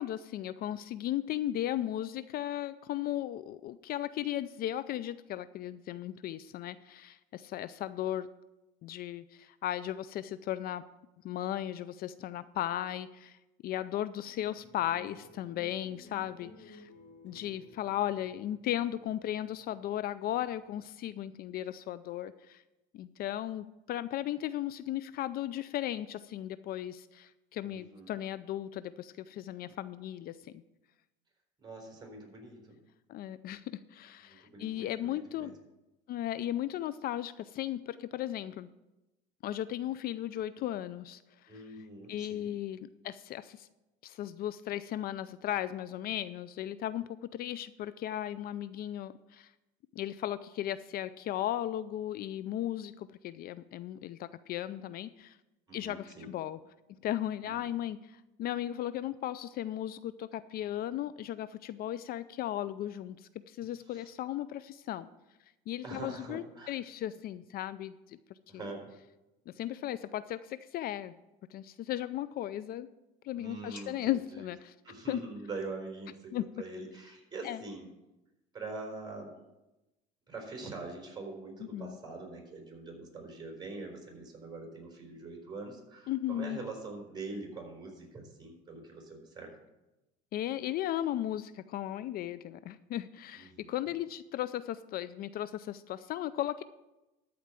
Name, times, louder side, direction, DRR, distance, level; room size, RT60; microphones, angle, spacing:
voice 1, 0.0-8.3 8.8-10.8 11.2-16.9 17.2-22.6 22.9-30.6 33.1-35.5 36.1-38.7 39.4-41.6 42.1-43.7 44.0-49.5 49.9-55.4 55.7-56.6 57.0-65.1 65.7-68.2 68.5-68.6 69.5-71.2 71.5-72.9 73.2-74.7 75.1-75.2 76.3-76.4 77.4-77.6 81.6-82.0 86.1-86.6 90.3-96.6, left 12 dB, 55° left, 15 dB, 0.4 m, -36 dB
sound 1, 14.2-20.8, left 2 dB, 70° left, 3.4 m, -56 dB
voice 2, 27.6-28.1 31.6-32.7 34.3-35.5 41.5-42.5 55.7-56.3 57.4-57.5 63.9-64.1 65.8-66.7 68.5-68.9 73.3-74.0 74.3-74.5 74.8-77.9 78.5-79.3 80.3-89.6 93.4-93.8, right 3 dB, 25° right, 1 dB, 4.2 m, -44 dB
13.5 x 4.6 x 7.4 m, 0.99 s
supercardioid pair, 100°, 19 cm